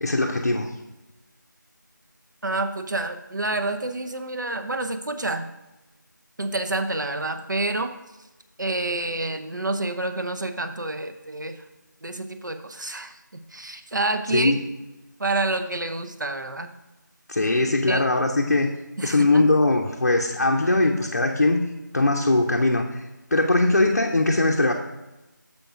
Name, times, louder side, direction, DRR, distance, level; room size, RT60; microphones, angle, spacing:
voice 1, 0.0-0.8 14.3-14.6 17.3-18.7 19.0-21.6 21.9-23.0 23.3-24.7, left 2 dB, 50° left, 1 dB, 0.6 m, -21 dB
voice 2, 2.4-5.5 6.4-8.0 8.6-11.6 12.0-14.5 15.2-16.7 17.9-18.1 19.0-19.4, right 2 dB, 70° right, 7 dB, 0.7 m, -28 dB
6.9 x 5.4 x 4.6 m, 1.0 s
figure-of-eight pair, 170°, 11 cm